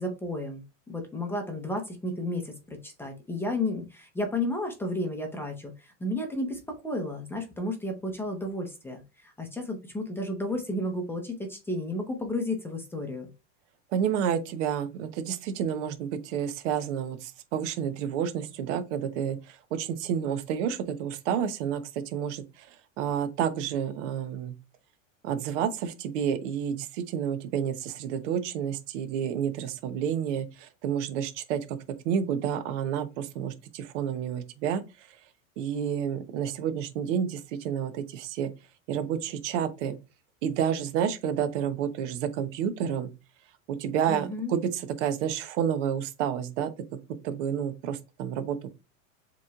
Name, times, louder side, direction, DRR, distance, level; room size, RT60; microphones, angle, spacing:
voice 1, 0.0-13.3 44.1-44.6, left 1 dB, 5° left, 0.6 m, -32 dB
voice 2, 13.9-22.7 23.0-24.6 25.2-31.8 32.0-35.1 35.6-38.5 38.9-40.0 40.4-43.1 43.7-46.7 47.2-48.7, right 8 dB, 70° right, 0.9 m, -30 dB
7.2 x 3.1 x 2.4 m
supercardioid pair, 150°, 38 cm